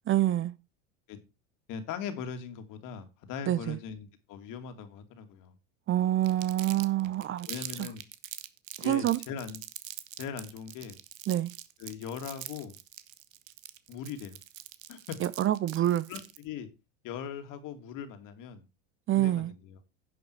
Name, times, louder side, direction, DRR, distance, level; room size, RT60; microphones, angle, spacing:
voice 1, 0.1-0.5 3.5-3.8 5.9-7.5 7.8-7.9 8.8-9.2 11.3-11.5 15.2-16.1 19.1-19.5, right 13 dB, 35° right, 0.6 m, -26 dB
voice 2, 1.7-5.6 7.5-8.0 8.8-9.6 10.2-11.0 11.8-12.7 13.9-14.4 14.9-15.2 16.1-16.7 17.0-18.6 19.1-19.8, left 7 dB, 55° left, 2.5 m, -40 dB
Crumpling crinkling, 6.2-16.4, right 13 dB, 90° right, 1.2 m, -44 dB
10.5 x 7.2 x 4.7 m
supercardioid pair, 105°, 38 cm